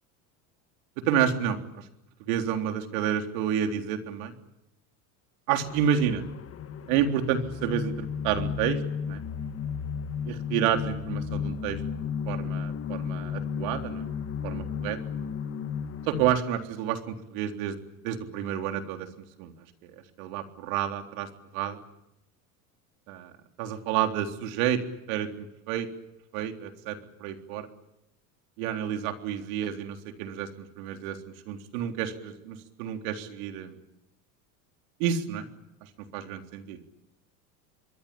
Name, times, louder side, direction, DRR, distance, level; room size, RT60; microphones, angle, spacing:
voice 1, 1.1-1.6 2.3-4.3 5.5-6.2 6.9-9.2 10.3-11.8 12.3-14.1 14.4-15.0 16.1-17.8 18.0-19.1 19.4-19.5 19.8-19.9 20.2-21.3 21.5-21.8 23.1-23.3 23.6-24.8 25.1-25.9 26.3-27.7 28.6-31.2 31.5-33.8 35.0-35.5 36.1-36.8, right 9 dB, 70° right, 5 dB, 3.8 m, -29 dB
sound 1, 5.6-16.3, left 7 dB, 30° left, 1.7 m, -33 dB
27.0 x 22.5 x 8.7 m, 0.85 s
supercardioid pair, 105°, 43 cm